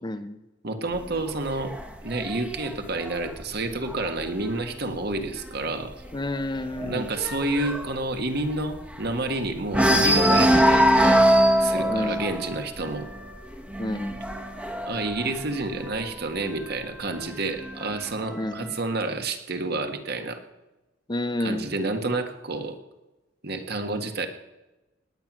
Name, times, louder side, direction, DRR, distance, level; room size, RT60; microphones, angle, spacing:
voice 1, 0.0-0.4 6.1-7.1 11.9-12.3 13.8-14.2 18.4-18.7 21.1-21.7, left 1 dB, 25° left, 11 dB, 0.7 m, -30 dB
voice 2, 0.6-1.7 2.0-6.0 6.8-11.2 11.6-13.1 14.8-20.4 21.4-22.8 23.4-24.3, right 2 dB, 55° right, 6 dB, 1.6 m, -29 dB
sound 1, 0.9-4.5 5.0-5.3 5.5-5.6 6.0-9.3 9.7-16.2 17.1-18.1, equal, 5° right, 1.1 m, -23 dB
19.0 x 9.1 x 6.1 m, 1.0 s
head